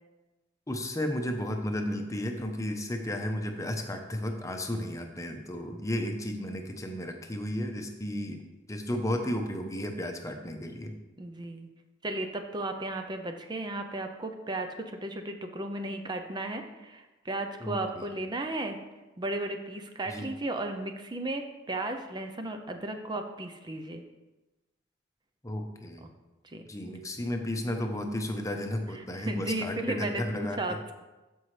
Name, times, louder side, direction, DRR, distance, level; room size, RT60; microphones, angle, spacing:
voice 1, 0.7-8.4 8.7-11.0 17.6-18.1 20.1-20.2 25.4-26.0 26.7-30.8, left 1 dB, 15° left, 4 dB, 0.8 m, -33 dB
voice 2, 11.2-11.7 12.0-18.8 19.2-24.0 26.4-26.6 28.9-30.9, right 2 dB, 25° right, 6 dB, 0.6 m, -35 dB
13.5 x 5.4 x 3.3 m, 1.1 s
head